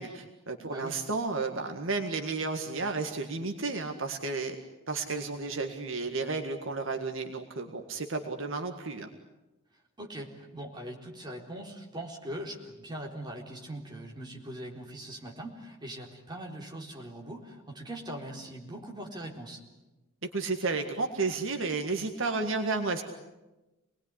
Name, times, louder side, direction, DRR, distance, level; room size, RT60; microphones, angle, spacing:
voice 1, 0.0-4.6 4.9-9.1 20.2-23.0, right 3 dB, 60° right, 4 dB, 1.9 m, -32 dB
voice 2, 0.6-0.9 10.0-19.6, right 1 dB, 20° right, 0 dB, 4.1 m, -41 dB
27.5 x 20.5 x 9.9 m, 1.1 s
head